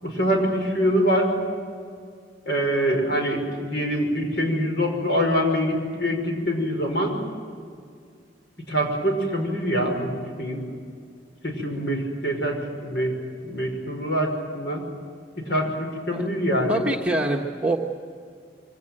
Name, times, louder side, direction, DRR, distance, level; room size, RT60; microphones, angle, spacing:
voice 1, 0.0-1.3 2.5-7.2 8.7-10.6 11.4-13.2 13.4-14.8 15.4-16.8, equal, 70° left, 2 dB, 5.7 m, -24 dB
voice 2, 16.7-17.8, right 1 dB, 10° right, -1 dB, 1.3 m, -24 dB
24.5 x 18.0 x 9.2 m, 2.2 s
head